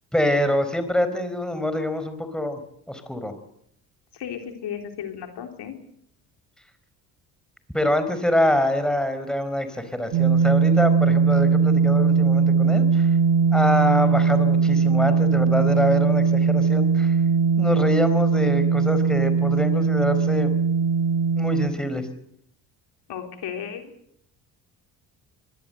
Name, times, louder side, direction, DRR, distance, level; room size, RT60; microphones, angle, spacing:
voice 1, 0.1-2.6 2.9-3.3 7.7-13.1 13.5-17.2 17.6-20.5 21.4-22.1, left 1 dB, ahead, 9 dB, 4.6 m, -25 dB
voice 2, 4.1-5.7 23.1-23.9, left 8 dB, 60° left, 5 dB, 3.8 m, -34 dB
sound 1, 10.1-21.7, right 5 dB, 55° right, 2.3 m, -20 dB
24.0 x 19.0 x 8.0 m, 0.71 s
hypercardioid pair, 55°, 46 cm